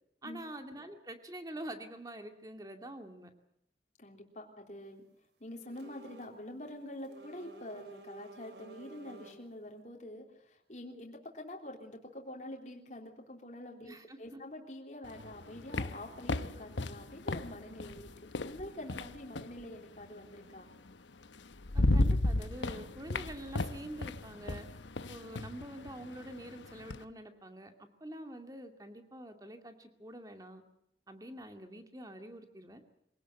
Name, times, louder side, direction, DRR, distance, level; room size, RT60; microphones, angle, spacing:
voice 1, 0.2-3.3 13.9-14.4 21.7-24.7 25.1-27.7 28.0-30.6 31.1-32.8, right 1 dB, 20° right, 6 dB, 2.4 m, -46 dB
voice 2, 4.0-5.0 5.4-18.1 18.4-20.7 25.0-25.4, left 1 dB, 40° left, 1 dB, 3.4 m, -46 dB
sound 1, 5.6-6.4 6.6-9.5, right 3 dB, 70° right, 3.4 m, -53 dB
sound 2, 15.0-19.6 20.9-21.0 21.4-27.0, left 2 dB, 80° left, 1.0 m, -34 dB
25.0 x 18.0 x 8.0 m, 0.77 s
head